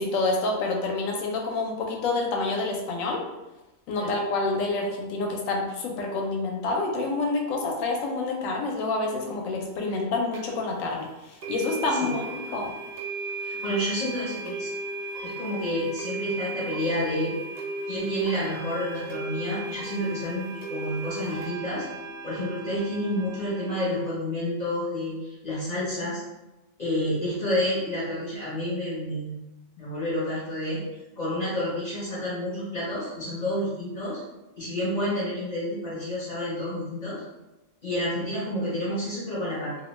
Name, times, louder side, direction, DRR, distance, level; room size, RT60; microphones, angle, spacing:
voice 1, 0.0-3.2 3.9-12.7, left 3 dB, 85° left, 1 dB, 1.0 m, -28 dB
sound 1, 10.3-10.4 11.4-23.8, right 2 dB, 85° right, 0.3 m, -36 dB
voice 2, 13.4-14.7 15.2-17.4 17.9-21.9 22.2-25.2 25.4-26.2 26.8-29.3 29.8-30.8 31.2-34.2 34.6-37.2 37.8-39.8, left 1 dB, 40° left, -8 dB, 0.8 m, -29 dB
2.6 x 2.1 x 3.0 m, 1.0 s
omnidirectional pair, 1.4 m